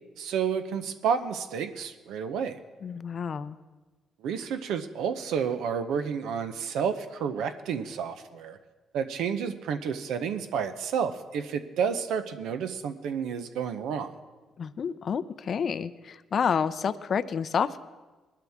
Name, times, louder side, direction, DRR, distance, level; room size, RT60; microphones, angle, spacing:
voice 1, 0.2-2.6 4.2-8.6 8.9-14.1, right 7 dB, 85° right, 8 dB, 0.7 m, -30 dB
voice 2, 2.8-3.6 14.6-17.8, left 7 dB, 50° left, 14 dB, 0.5 m, -29 dB
20.5 x 12.0 x 3.6 m, 1.3 s
cardioid pair, 90°, 0 cm